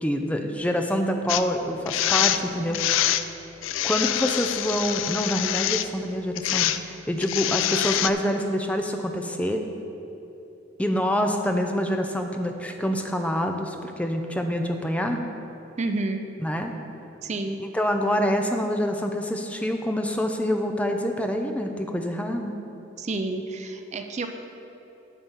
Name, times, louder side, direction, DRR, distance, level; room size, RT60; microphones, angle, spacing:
voice 1, 0.0-3.0 3.8-9.6 10.8-15.2 16.4-16.7 17.6-22.5, equal, 5° left, 4 dB, 0.6 m, -26 dB
sound 1, 1.3-1.4 1.9-2.4 2.7-3.2 3.6-5.9 6.3-6.8 7.2-8.1, left 12 dB, 85° left, 0.4 m, -25 dB
voice 2, 15.8-16.2 17.2-17.6 23.0-24.3, right 2 dB, 35° right, 6 dB, 0.5 m, -29 dB
11.0 x 4.1 x 7.3 m, 3.0 s
head